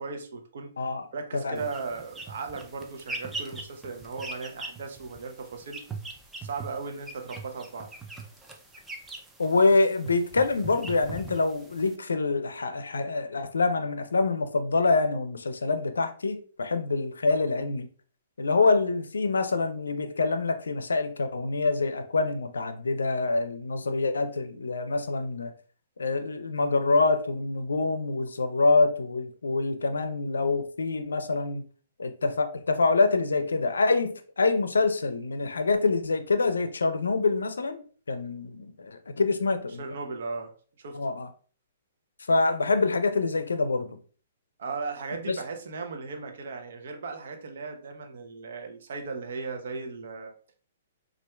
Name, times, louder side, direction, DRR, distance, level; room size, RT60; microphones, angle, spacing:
voice 1, 0.0-5.8 6.4-7.9 39.8-41.0 44.6-50.3, right 4 dB, 65° right, 0.7 m, -37 dB
sound 1, 1.6-12.0, right 3 dB, 10° right, 0.5 m, -42 dB
voice 2, 9.4-17.9 18.4-25.5 26.0-31.6 32.0-39.8 40.9-41.3 42.3-43.9 45.3-45.4, left 3 dB, 90° left, 0.4 m, -26 dB
4.2 x 2.4 x 2.3 m
hypercardioid pair, 135°, 0 cm